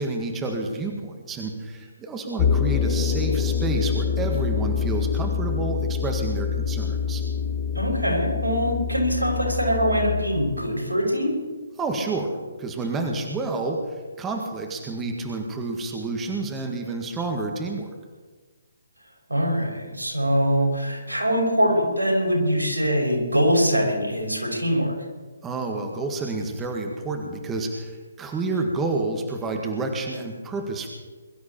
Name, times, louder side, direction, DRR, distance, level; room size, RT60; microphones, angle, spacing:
voice 1, 0.0-7.2 11.8-18.0 25.4-30.9, right 3 dB, 15° right, 2 dB, 1.9 m, -29 dB
sound 1, 2.4-10.1, left 6 dB, 35° left, 1.2 m, -25 dB
voice 2, 7.7-11.3 19.3-25.0, equal, 90° right, -1 dB, 6.3 m, -23 dB
22.5 x 12.5 x 4.4 m, 1.3 s
figure-of-eight pair, 140°, 0 cm